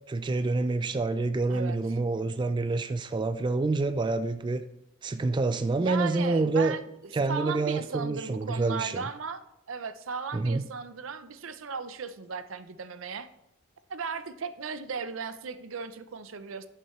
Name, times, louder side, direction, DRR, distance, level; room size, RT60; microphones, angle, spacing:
voice 1, 0.1-4.6 5.0-6.7 7.1-9.0 10.3-10.7, right 3 dB, 25° right, 10 dB, 0.3 m, -27 dB
voice 2, 5.8-6.9 7.3-13.3 13.9-16.7, right 5 dB, 75° right, 12 dB, 0.6 m, -36 dB
10.0 x 6.7 x 3.1 m, 0.86 s
head